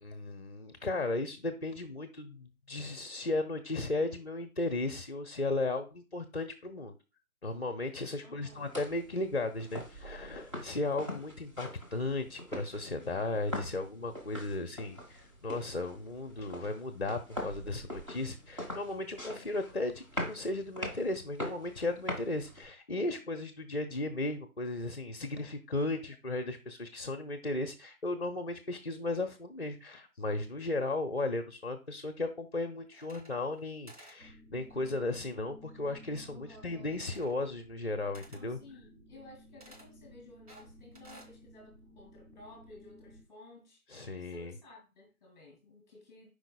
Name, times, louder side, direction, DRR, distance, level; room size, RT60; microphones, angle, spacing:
voice 1, 0.0-7.0 7.4-38.6 43.9-44.5, left 2 dB, 45° left, 0.6 m, -35 dB
voice 2, 8.2-8.8 36.2-36.9 38.3-46.3, left 2 dB, 15° left, 2.2 m, -55 dB
sound 1, 8.4-22.6, left 1 dB, 20° right, 1.0 m, -43 dB
sound 2, 32.9-33.6 33.9-34.2 36.9-37.4 38.1-38.5 39.6-39.9 40.5-41.3, right 1 dB, 90° right, 3.2 m, -55 dB
sound 3, 34.2-43.2, equal, 40° right, 2.5 m, -56 dB
8.9 x 4.8 x 2.2 m
figure-of-eight pair, 160°, 44 cm